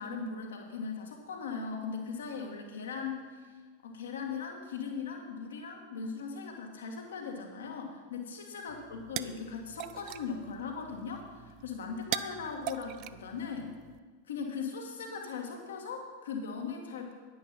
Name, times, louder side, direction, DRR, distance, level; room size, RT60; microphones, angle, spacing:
voice 1, 0.0-3.5 3.8-13.7 14.3-17.1, left 5 dB, 65° left, 3 dB, 1.7 m, -39 dB
sound 1, 8.7-14.0, right 14 dB, 40° right, 0.4 m, -42 dB
10.5 x 9.9 x 4.2 m, 1.5 s
figure-of-eight pair, 90°, 0 cm